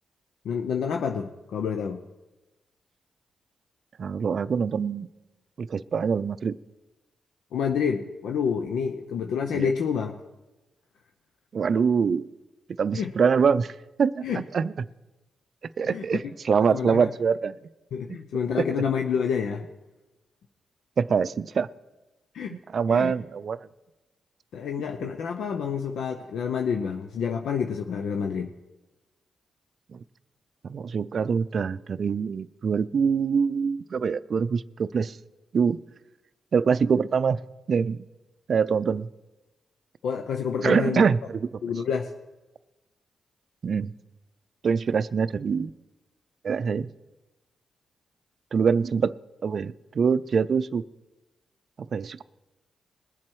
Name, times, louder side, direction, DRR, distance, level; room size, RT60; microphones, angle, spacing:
voice 1, 0.4-2.0 7.5-10.2 12.9-13.1 14.2-14.4 15.9-16.2 16.7-17.1 17.9-19.6 22.3-22.6 22.9-23.1 24.5-28.5 40.0-41.0 41.6-42.1, left 6 dB, 80° left, 5 dB, 0.6 m, -28 dB
voice 2, 4.0-5.1 5.6-6.6 9.5-9.7 11.5-12.3 12.8-13.7 14.0-14.7 15.8-17.6 18.6-18.7 21.0-21.7 22.5-23.6 29.9-30.0 30.6-35.2 35.5-35.8 36.5-37.4 37.7-38.0 38.5-39.1 40.6-41.4 43.6-43.9 44.6-45.7 46.4-46.9 48.5-49.1 49.4-50.8 51.9-52.2, right 6 dB, 60° right, 16 dB, 0.4 m, -24 dB
20.5 x 7.4 x 4.6 m, 1.1 s
cardioid pair, 65°, 0 cm